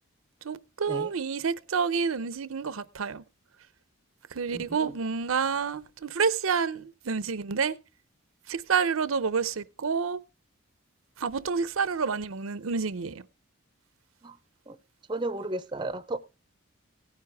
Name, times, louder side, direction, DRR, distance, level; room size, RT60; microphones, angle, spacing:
voice 1, 0.4-3.2 4.3-7.8 8.5-10.2 11.2-13.2, right 5 dB, 75° right, 0.6 m, -29 dB
voice 2, 4.5-5.0 14.2-14.4 14.7-14.8 15.1-16.2, right 2 dB, 20° right, 0.5 m, -34 dB
17.0 x 9.7 x 3.4 m
head